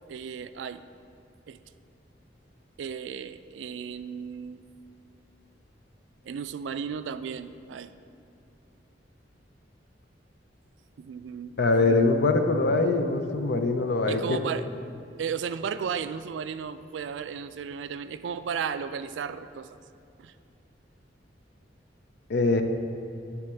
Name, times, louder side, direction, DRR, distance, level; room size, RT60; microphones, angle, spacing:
voice 1, 0.1-0.8 1.5-1.6 2.8-4.6 6.2-7.9 11.0-11.6 11.8-12.1 14.1-14.7 15.2-19.8 20.2-20.3, right 7 dB, 80° right, 12 dB, 0.3 m, -34 dB
voice 2, 11.6-14.4 22.3-22.6, left 3 dB, 65° left, 6 dB, 0.5 m, -23 dB
9.6 x 3.5 x 6.9 m, 2.6 s
head